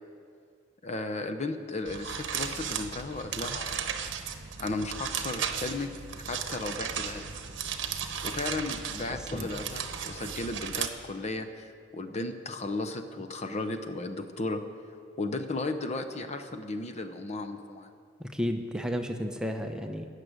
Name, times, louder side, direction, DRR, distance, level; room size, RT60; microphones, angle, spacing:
voice 1, 0.8-3.9 4.6-5.9 6.3-7.2 8.2-14.6 15.2-17.9, left 2 dB, 35° left, 7 dB, 0.7 m, -35 dB
sound 1, 1.9-10.9, right 7 dB, 70° right, 0.9 m, -35 dB
voice 2, 9.1-9.5 18.2-20.1, equal, 5° right, 5 dB, 0.8 m, -33 dB
15.0 x 6.7 x 9.4 m, 2.2 s
head